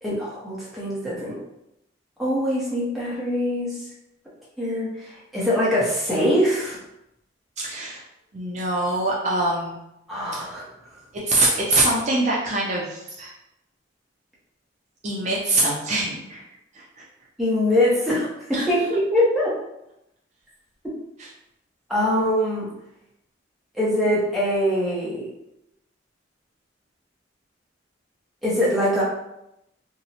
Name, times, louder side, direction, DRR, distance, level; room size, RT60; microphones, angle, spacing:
voice 1, 0.0-1.4 2.2-3.8 4.6-6.8 10.1-10.7 17.4-19.5 20.8-20.9 21.9-22.7 23.7-25.3 28.4-29.0, equal, ahead, -8 dB, 0.7 m, -23 dB
voice 2, 7.6-8.0 8.3-9.8 10.3-10.4 11.1-13.3 15.0-16.4 16.7-17.0 18.5-18.7 21.2-21.3, right 2 dB, 40° right, -4 dB, 0.4 m, -24 dB
2.6 x 2.0 x 2.7 m, 0.85 s
head